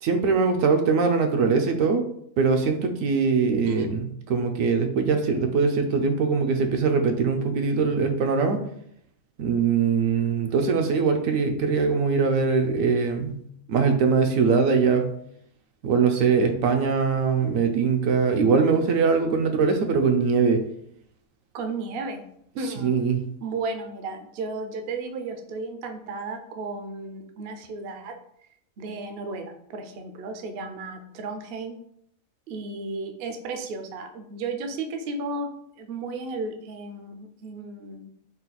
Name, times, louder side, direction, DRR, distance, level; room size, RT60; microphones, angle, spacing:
voice 1, 0.0-2.0 2.4-8.6 9.4-13.4 13.7-15.1 15.8-20.6 22.8-23.2, right 5 dB, 80° right, 6 dB, 1.0 m, -22 dB
voice 2, 21.5-22.2 22.6-22.9 23.4-28.2 28.8-31.8 32.5-35.5 35.8-38.1, right 3 dB, 60° right, 5 dB, 0.6 m, -34 dB
4.0 x 2.3 x 4.0 m, 0.69 s
omnidirectional pair, 1.4 m